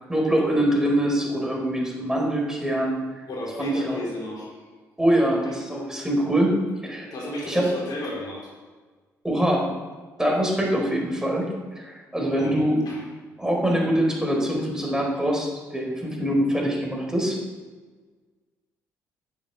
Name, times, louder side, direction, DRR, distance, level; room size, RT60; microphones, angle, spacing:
voice 1, 0.1-3.0 3.6-4.0 5.0-7.1 7.5-7.7 9.2-9.7 10.2-12.8 13.4-17.4, right 1 dB, 10° right, -1 dB, 4.4 m, -24 dB
voice 2, 3.3-4.5 5.4-5.5 6.9-8.5 12.3-13.1, equal, 65° left, -3 dB, 4.1 m, -33 dB
10.5 x 7.0 x 8.3 m, 1.4 s
supercardioid pair, 60°, 7 cm